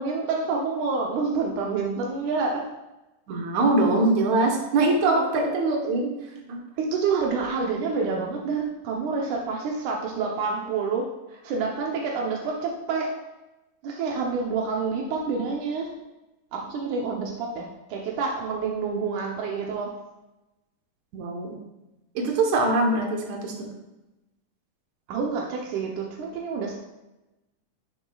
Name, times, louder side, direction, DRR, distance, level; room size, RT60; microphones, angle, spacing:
voice 1, 0.0-2.6 5.1-5.4 6.8-13.1 13.8-15.9 16.5-19.9 25.1-26.8, right 4 dB, 80° right, -1 dB, 1.7 m, -28 dB
voice 2, 3.3-6.1 6.5-6.6 21.1-21.6 22.2-23.5, right 2 dB, 65° right, 1 dB, 2.0 m, -23 dB
11.5 x 7.0 x 2.4 m, 1.0 s
omnidirectional pair, 4.6 m